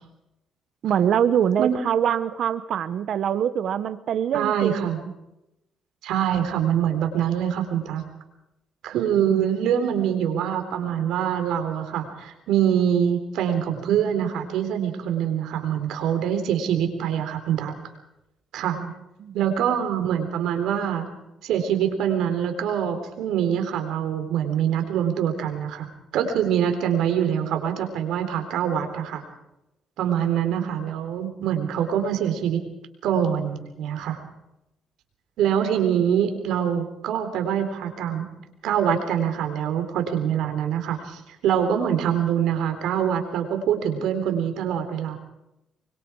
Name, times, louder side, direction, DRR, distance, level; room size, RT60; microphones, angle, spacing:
voice 1, 0.8-4.9 9.2-9.4 18.7-18.9 19.2-19.4 30.1-30.3 30.6-30.8, right 9 dB, 70° right, 12 dB, 1.1 m, -24 dB
voice 2, 4.3-5.0 6.0-8.0 8.8-17.7 18.5-18.8 19.3-21.1 21.4-29.2 30.0-32.6 33.0-34.2 35.4-38.3 38.6-45.2, right 9 dB, 85° right, 6 dB, 3.9 m, -24 dB
24.0 x 23.0 x 4.8 m, 0.90 s
cardioid pair, 90°, 0 cm